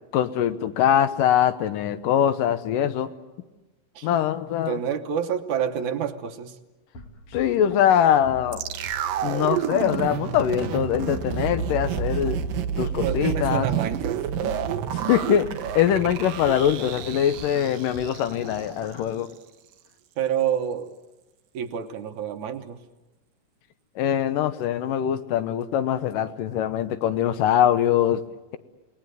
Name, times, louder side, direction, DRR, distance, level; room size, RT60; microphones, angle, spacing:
voice 1, 0.1-3.1 4.0-4.7 7.3-8.6 9.2-12.4 12.8-13.7 14.9-19.3 24.0-28.2, left 10 dB, 85° left, 11 dB, 2.6 m, -23 dB
voice 2, 4.7-6.6 13.0-14.3 20.2-21.0 21.5-22.8, right 8 dB, 70° right, 8 dB, 2.3 m, -28 dB
sound 1, 6.9-19.1, left 1 dB, 45° left, 3.1 m, -42 dB
sound 2, 8.5-18.7 18.9-19.0, right 9 dB, 90° right, 2.7 m, -29 dB
28.5 x 19.5 x 9.3 m, 1.1 s
omnidirectional pair, 3.8 m